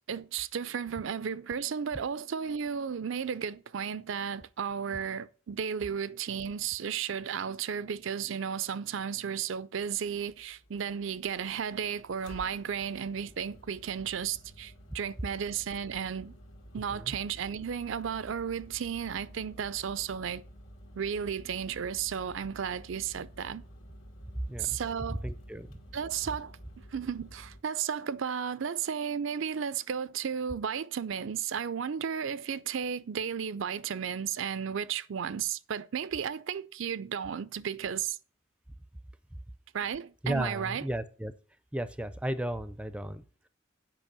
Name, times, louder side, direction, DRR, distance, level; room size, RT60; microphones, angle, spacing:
voice 1, 0.1-16.4 16.7-20.4 21.0-23.6 24.6-25.2 25.9-26.6 26.9-38.2 39.7-40.8, right 7 dB, 70° right, 0.4 m, -34 dB
sound 1, 9.8-27.6, equal, 85° left, 2.3 m, -52 dB
voice 2, 24.4-24.8 25.1-25.8 40.2-41.3 41.7-43.5, right 1 dB, 5° right, 0.4 m, -34 dB
9.0 x 5.2 x 6.8 m
head